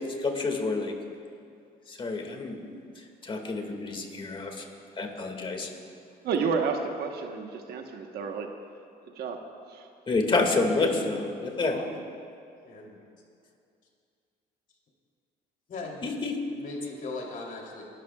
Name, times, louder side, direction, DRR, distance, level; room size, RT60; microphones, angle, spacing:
voice 1, 0.2-0.9 1.9-4.6 5.0-5.7 10.1-11.8 16.0-16.3, left 3 dB, 30° left, 2 dB, 2.1 m, -29 dB
voice 2, 6.2-8.5 9.1-9.9, right 5 dB, 70° right, 4 dB, 1.3 m, -31 dB
voice 3, 11.1-11.9 12.6-13.0 15.7-16.1 16.5-17.8, left 3 dB, 55° left, -1 dB, 3.3 m, -39 dB
29.5 x 12.5 x 2.4 m, 2.4 s
cardioid pair, 110°, 17 cm